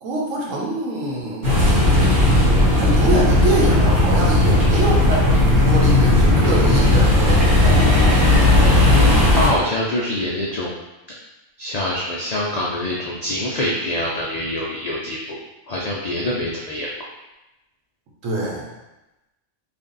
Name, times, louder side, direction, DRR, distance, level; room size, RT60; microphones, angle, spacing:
voice 1, 0.0-1.6 2.7-5.3 5.6-8.0 18.2-18.7, right 1 dB, 85° right, -3 dB, 1.3 m, -24 dB
sound 1, 1.4-9.5, left 1 dB, 45° right, 1.0 m, -15 dB
voice 2, 8.7-10.8 11.6-15.4 15.7-16.9, left 1 dB, 85° left, -4 dB, 0.3 m, -25 dB
3.3 x 2.5 x 3.8 m, 1.0 s
omnidirectional pair, 1.3 m